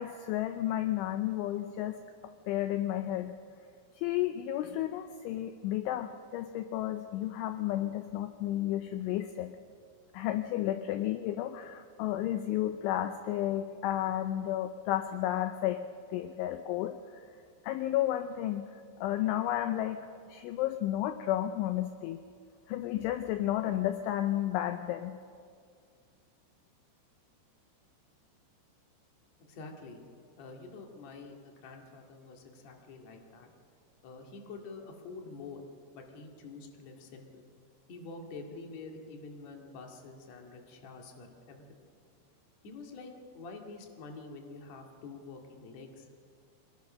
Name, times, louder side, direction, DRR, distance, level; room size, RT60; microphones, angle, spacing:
voice 1, 0.0-2.0 2.5-3.3 4.0-9.5 10.1-15.8 16.1-17.3 17.6-18.7 19.0-22.2 22.7-25.2, left 13 dB, 80° left, 8 dB, 2.9 m, -32 dB
voice 2, 29.4-30.0 30.4-33.5 34.0-35.7 35.9-37.4 37.9-41.8 42.6-46.1, left 3 dB, 45° left, 2 dB, 2.5 m, -47 dB
25.0 x 20.5 x 6.3 m, 2.2 s
omnidirectional pair, 6.0 m